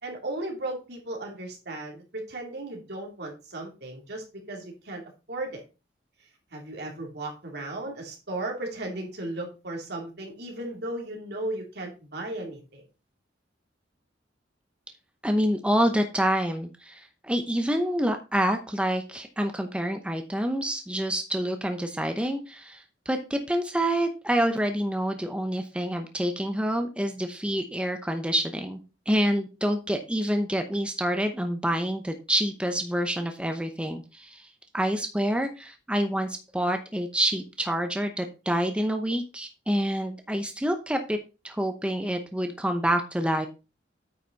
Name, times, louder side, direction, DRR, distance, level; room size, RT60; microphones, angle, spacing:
voice 1, 0.0-5.0 5.3-5.6 6.5-12.8, right 2 dB, 65° right, 1 dB, 2.9 m, -35 dB
voice 2, 15.2-28.8 29.1-41.2 41.4-43.5, equal, 5° right, 6 dB, 0.8 m, -27 dB
9.0 x 5.9 x 4.0 m, 0.30 s
head